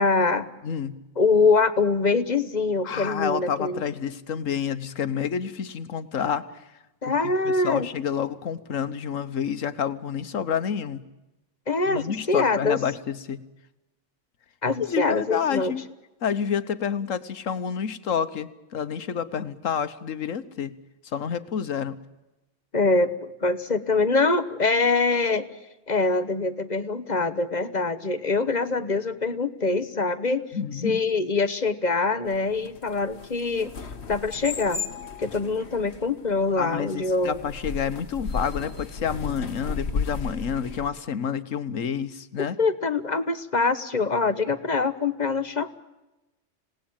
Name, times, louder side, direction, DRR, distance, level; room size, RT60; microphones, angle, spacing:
voice 1, 0.0-0.5 1.2-3.8 7.0-7.9 11.7-12.8 14.6-15.7 22.7-25.5 25.9-30.4 30.8-33.7 34.1-34.9 35.2-37.4 42.4-45.8, left 3 dB, 35° left, 11 dB, 1.3 m, -24 dB
voice 2, 0.6-1.0 2.8-6.4 7.1-11.0 11.9-13.4 14.8-15.8 16.2-20.8 21.0-22.0 30.5-31.0 36.6-42.5, left 7 dB, 90° left, 12 dB, 1.5 m, -29 dB
sound 1, 32.3-40.9, left 4 dB, 60° left, 1.6 m, -34 dB
27.0 x 18.5 x 8.9 m, 1.0 s
omnidirectional pair, 1.3 m